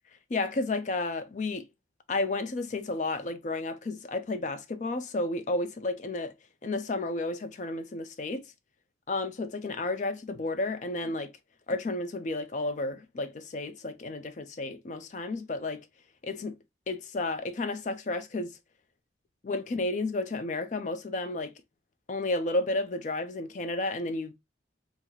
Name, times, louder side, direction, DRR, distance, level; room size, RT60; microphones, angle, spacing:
voice 1, 0.3-1.7 2.1-6.3 6.6-8.4 9.1-11.3 11.7-15.9 16.2-16.6 16.9-18.5 19.4-21.5 22.1-24.3, left 2 dB, 40° left, 0.4 m, -32 dB
2.8 x 2.0 x 3.7 m
head